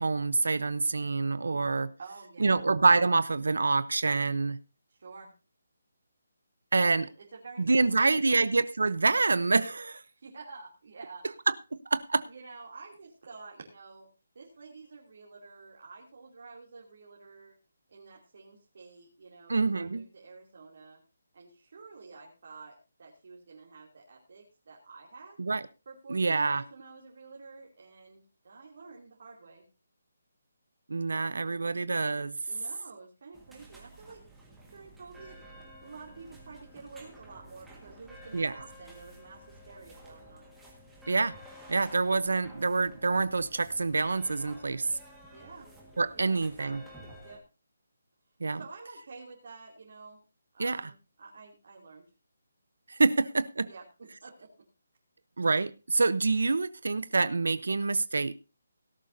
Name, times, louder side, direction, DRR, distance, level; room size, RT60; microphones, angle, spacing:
voice 1, 0.0-1.9 2.4-4.6 6.7-7.1 7.6-10.0 11.5-11.6 11.9-12.3 19.5-20.0 25.4-25.6 26.1-26.6 30.9-32.4 38.3-38.5 41.1-41.3 41.7-44.9 46.0-46.8 48.4-48.6 50.6-50.8 52.9-53.7 55.4-58.4, right 3 dB, 85° right, 15 dB, 0.8 m, -26 dB
voice 2, 2.0-2.7 4.9-5.3 6.8-8.4 10.2-11.2 12.3-14.1 14.3-17.6 17.9-21.0 21.3-25.4 25.9-29.6 32.5-34.2 34.7-35.4 35.8-40.5 45.3-45.7 46.1-46.4 47.2-47.4 48.5-50.2 50.5-52.0 53.6-54.6, right 4 dB, 40° right, -2 dB, 2.9 m, -49 dB
sound 1, 33.3-47.4, equal, ahead, 1.7 m, -52 dB
17.5 x 11.5 x 2.7 m, 0.30 s
hypercardioid pair, 180°, 0 cm